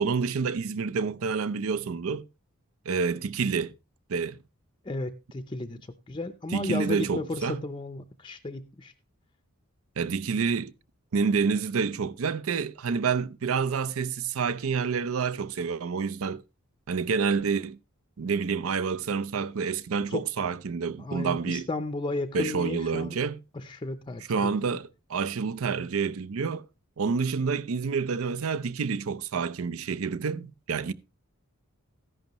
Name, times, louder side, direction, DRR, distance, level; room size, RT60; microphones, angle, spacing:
voice 1, 0.0-2.2 2.9-3.7 4.1-4.4 6.5-7.6 10.0-10.7 11.1-16.4 16.9-17.8 18.2-21.7 22.3-23.4 24.3-26.6 27.0-30.9, right 5 dB, 75° right, 0.5 m, -28 dB
voice 2, 4.8-5.8 6.1-8.9 20.1-20.2 21.0-23.2 23.5-24.5, left 2 dB, 20° left, 0.5 m, -33 dB
13.5 x 10.5 x 3.0 m
head